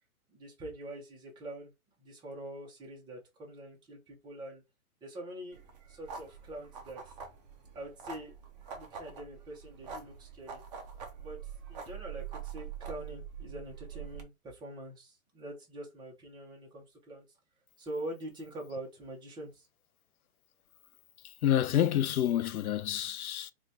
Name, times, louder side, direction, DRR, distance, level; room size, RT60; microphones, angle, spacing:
voice 1, 0.3-1.7 2.0-4.6 5.0-5.6 5.9-7.1 7.7-8.3 8.7-10.6 11.2-17.2 17.8-19.7, right 1 dB, 10° right, 0.9 m, -44 dB
sound 1, 5.5-14.2, right 7 dB, 30° right, 0.6 m, -45 dB
voice 2, 21.4-23.5, left 11 dB, 75° left, 0.5 m, -28 dB
3.0 x 2.4 x 4.1 m
hypercardioid pair, 145°, 44 cm